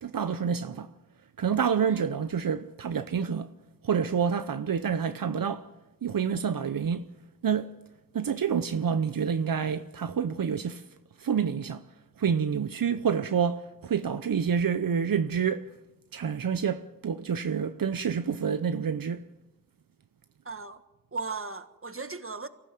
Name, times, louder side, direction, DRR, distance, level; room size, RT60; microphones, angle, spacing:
voice 1, 0.0-0.9 1.4-3.5 3.8-5.7 6.0-7.1 7.4-7.7 8.1-10.9 11.2-11.8 12.2-15.7 16.1-19.3, right 7 dB, 80° right, 0.7 m, -28 dB
voice 2, 20.4-20.8 21.1-22.5, right 4 dB, 40° right, 1.6 m, -37 dB
24.0 x 15.5 x 7.7 m
cardioid pair, 40°, 34 cm